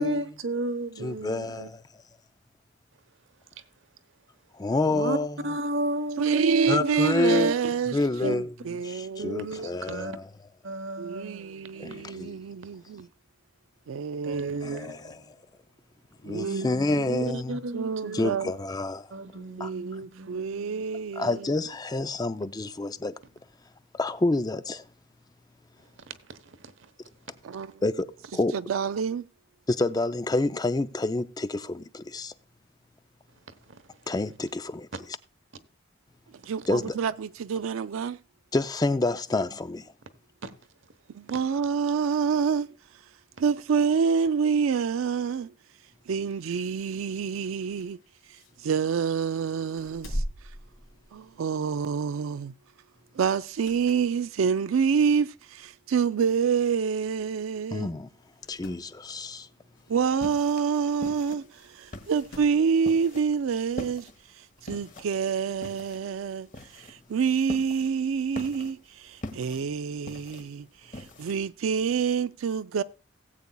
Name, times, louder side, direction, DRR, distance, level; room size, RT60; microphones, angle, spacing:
voice 1, 0.0-1.7 4.9-5.2 5.4-7.5 8.2-8.4 9.2-10.2 10.6-12.3 14.2-14.9 16.3-18.3 19.1-20.8 26.1-26.4 26.6-26.9 33.7-33.8 40.4-40.5 41.3-41.4, right 1 dB, 65° right, 0.9 m, -33 dB
voice 2, 1.0-1.8 4.5-5.4 6.7-7.5 7.9-10.3 11.8-12.4 14.6-15.3 16.2-17.6 18.1-19.1 19.6-19.7 21.2-23.1 23.9-24.9 27.8-28.6 29.7-32.3 34.1-34.9 36.7-37.0 38.5-39.9 57.7-58.1 58.5-59.5, left 2 dB, 20° left, 0.4 m, -28 dB
voice 3, 6.2-8.0 8.2-9.4 11.0-13.1 13.9-15.0 16.3-16.7 17.1-17.3 17.7-18.5 19.6-21.4 27.4-27.7 28.7-29.2 36.5-38.2 41.1-42.7 43.4-45.5 46.1-48.0 48.6-50.2 51.1-52.5 53.2-57.9 59.9-61.5 61.7-64.1 64.6-66.5 66.7-70.6 70.9-72.8, right 6 dB, 85° right, 0.4 m, -27 dB
sound 1, 47.3-49.1 49.6-51.5 51.8-52.1 53.3-54.2 54.6-54.7 55.6-55.7 56.0-56.1 56.2-56.3 57.2-57.4 57.7-57.8 58.2-58.9 60.7-60.8 61.8-62.7 64.0-64.1, equal, 90° left, 2.8 m, -40 dB
sound 2, 59.8-71.4, left 1 dB, 40° left, 1.2 m, -43 dB
18.0 x 8.3 x 2.2 m
head